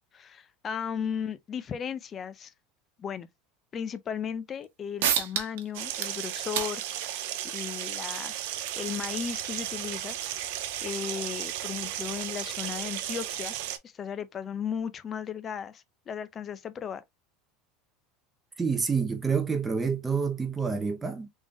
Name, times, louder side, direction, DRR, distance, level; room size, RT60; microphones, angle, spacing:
voice 1, 0.1-2.5 3.0-3.3 3.7-7.2 7.5-8.5 8.8-13.5 13.8-17.0, left 7 dB, 25° left, 0.4 m, -36 dB
sound 1, 4.6-4.7 5.0-5.6 5.9-11.1, right 9 dB, 85° right, 0.9 m, -35 dB
sound 2, 5.7-13.8, right 12 dB, 65° right, 0.6 m, -35 dB
voice 2, 18.6-21.3, right 5 dB, 10° right, 0.7 m, -28 dB
3.5 x 3.5 x 2.3 m
supercardioid pair, 165°, 0 cm